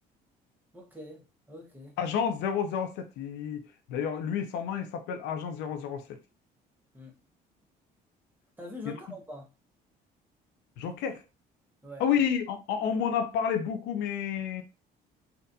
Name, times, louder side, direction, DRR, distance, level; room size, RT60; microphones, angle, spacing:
voice 1, 0.7-2.0 6.9-7.1 8.6-9.5 11.8-12.0, left 1 dB, 10° right, 1.2 m, -44 dB
voice 2, 2.0-3.6 3.9-6.2 8.9-9.0 10.8-11.2 12.0-14.6, left 8 dB, 90° left, 0.6 m, -30 dB
4.2 x 2.6 x 2.6 m
cardioid pair, 110°, 17 cm